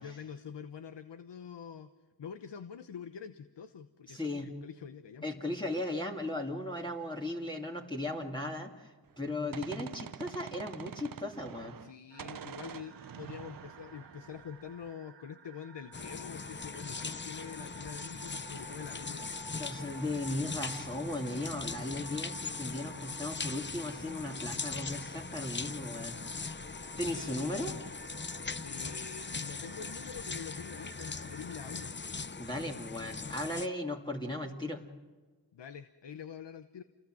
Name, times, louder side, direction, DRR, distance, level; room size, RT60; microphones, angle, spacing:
voice 1, 0.0-1.9 2.2-5.3 11.8-19.3 27.0-27.8 28.6-31.9 35.5-36.8, left 7 dB, 80° left, 10 dB, 1.0 m, -46 dB
voice 2, 4.1-4.5 5.2-11.7 19.6-26.2 27.0-27.7 32.4-34.8, left 1 dB, 10° left, 0 dB, 2.5 m, -37 dB
Gunshot gunfire, 9.1-11.9 12.2-14.9, right 8 dB, 55° right, 0.7 m, -46 dB
sound 1, 12.1-31.9, right 8 dB, 80° right, 1.5 m, -54 dB
sound 2, 15.9-33.7, left 4 dB, 25° left, 0.7 m, -40 dB
29.0 x 20.0 x 7.7 m, 1.4 s
cardioid pair, 50°, 42 cm